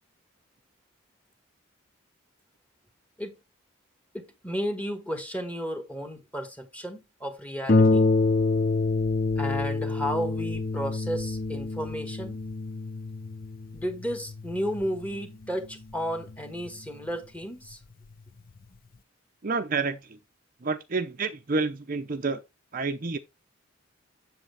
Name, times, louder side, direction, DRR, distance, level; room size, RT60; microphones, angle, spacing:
voice 1, 4.1-8.1 9.4-12.4 13.7-17.8, equal, 5° left, 1.5 m, -33 dB
Harp, 7.7-16.9 17.7-17.8 18.3-18.4, left 3 dB, 45° left, 0.6 m, -27 dB
voice 2, 19.4-20.2 20.6-22.4 22.7-23.2, right 4 dB, 40° right, 0.6 m, -29 dB
7.7 x 7.3 x 3.3 m
head